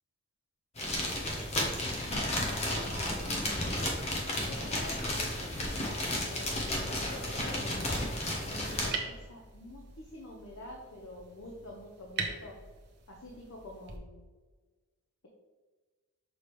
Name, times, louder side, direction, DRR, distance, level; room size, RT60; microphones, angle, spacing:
sound 1, 0.8-8.9, left 1 dB, 30° left, 1.1 m, -33 dB
voice 1, 2.6-3.7 4.5-5.3 6.1-8.0 8.3-12.6 13.1-14.2, left 1 dB, 75° left, -1 dB, 0.9 m, -48 dB
sound 2, 5.9-14.0, right 4 dB, 50° right, 0.8 m, -44 dB
6.4 x 5.1 x 3.2 m, 1.3 s
head